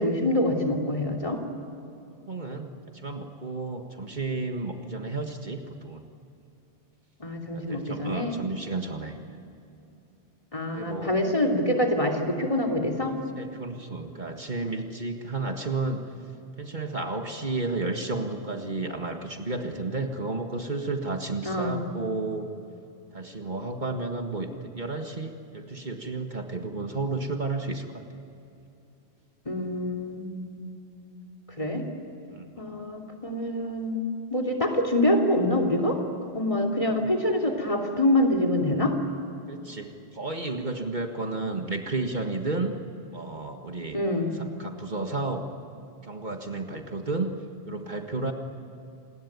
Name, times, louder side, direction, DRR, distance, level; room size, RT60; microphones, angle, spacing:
voice 1, 0.0-1.4 7.2-8.4 10.5-13.2 21.4-21.8 29.4-30.7 31.6-31.8 32.6-34.0 34.3-36.0 36.3-38.9 43.9-44.3, left 1 dB, 30° left, 4 dB, 3.1 m, -25 dB
voice 2, 2.3-6.1 7.5-9.5 10.7-11.1 13.4-16.0 16.6-22.5 23.1-28.0 32.3-32.7 36.8-37.1 39.5-42.7 43.1-44.0 44.3-45.5 46.0-47.3 47.7-48.3, right 3 dB, 45° right, 4 dB, 1.9 m, -32 dB
27.0 x 20.5 x 9.5 m, 2.7 s
omnidirectional pair, 1.1 m